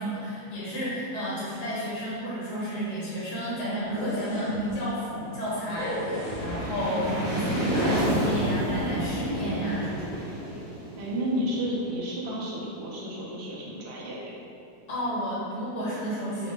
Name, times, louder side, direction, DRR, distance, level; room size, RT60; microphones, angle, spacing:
voice 1, 0.0-10.1 14.9-16.5, equal, 55° left, -8 dB, 0.9 m, -31 dB
sound 1, 3.8-4.7 5.7-6.8 7.7-8.7, equal, 75° left, 1.2 m, -36 dB
sound 2, 5.3-12.1, right 1 dB, 40° right, 1.1 m, -30 dB
voice 2, 11.0-14.3, equal, 80° right, -5 dB, 0.5 m, -31 dB
3.8 x 2.1 x 3.1 m, 2.7 s
omnidirectional pair, 1.7 m